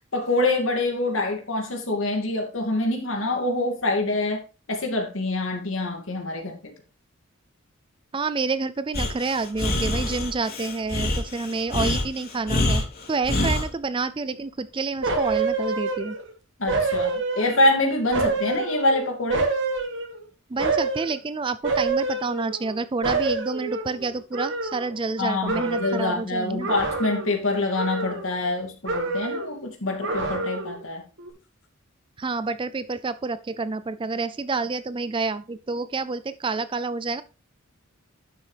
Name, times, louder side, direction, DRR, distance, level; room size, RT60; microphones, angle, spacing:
voice 1, 0.0-4.4 4.7-6.7 16.6-19.5 25.2-31.0, left 2 dB, 70° left, 2.5 m, -25 dB
voice 2, 8.1-12.8 13.1-16.2 20.5-26.7 32.2-37.2, right 3 dB, 25° right, 0.4 m, -28 dB
Breathing, 8.9-13.7, left 1 dB, 50° left, 3.2 m, -26 dB
sound 1, 15.0-16.3 16.7-17.8 18.1-20.2 20.6-21.2 21.6-22.8 23.0-25.2 25.5-26.1 26.6-27.4 27.7-28.6 28.8-29.6 30.0-30.8 31.2-31.3, right 3 dB, 60° right, 1.8 m, -27 dB
11.0 x 6.5 x 3.4 m
head